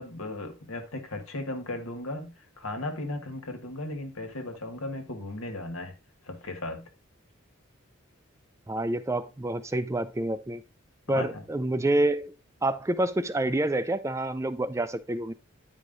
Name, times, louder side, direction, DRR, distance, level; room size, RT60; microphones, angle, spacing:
voice 1, 0.0-5.9 6.2-6.9 11.1-11.4, left 2 dB, 85° left, 1.6 m, -36 dB
voice 2, 8.7-10.6 11.1-12.4 12.6-15.3, right 1 dB, 15° right, 0.4 m, -28 dB
9.5 x 4.9 x 3.8 m
head